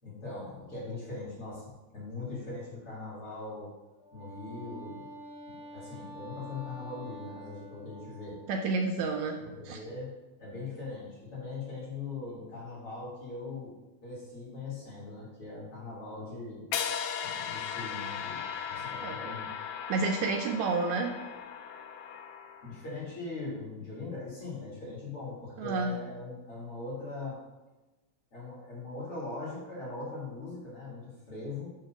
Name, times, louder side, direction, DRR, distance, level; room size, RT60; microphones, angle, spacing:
voice 1, 0.0-3.7 4.1-5.0 5.6-8.4 9.0-10.1 10.4-13.7 14.0-16.6 17.2-19.5 22.6-27.4 28.3-31.7, left 3 dB, 45° left, -8 dB, 2.9 m, -40 dB
Wind instrument woodwind instrument, 4.0-8.6, right 1 dB, 60° right, 0.8 m, -47 dB
voice 2, 8.5-9.4 9.7-9.8 19.0-19.2 19.9-21.1 25.6-26.0, right 4 dB, 80° right, 3 dB, 1.8 m, -29 dB
sound 1, 16.7-22.8, left 8 dB, 80° left, 1.7 m, -37 dB
6.6 x 2.9 x 5.8 m, 1.1 s
omnidirectional pair, 3.5 m